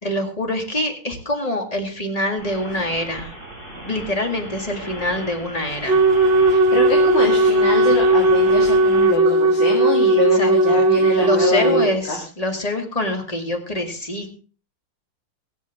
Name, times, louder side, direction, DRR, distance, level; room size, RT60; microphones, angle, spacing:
voice 1, 0.0-3.3 3.7-6.0 10.3-14.3, left 1 dB, 20° left, 4 dB, 1.9 m, -25 dB
sound 1, 2.4-9.1, right 1 dB, 25° right, 6.9 m, -36 dB
Wind instrument woodwind instrument, 5.9-11.9, right 1 dB, 80° right, 0.5 m, -16 dB
voice 2, 6.5-11.8 12.1-12.2, left 2 dB, 60° left, -1 dB, 3.2 m, -24 dB
24.0 x 8.1 x 3.5 m, 0.37 s
omnidirectional pair, 2.3 m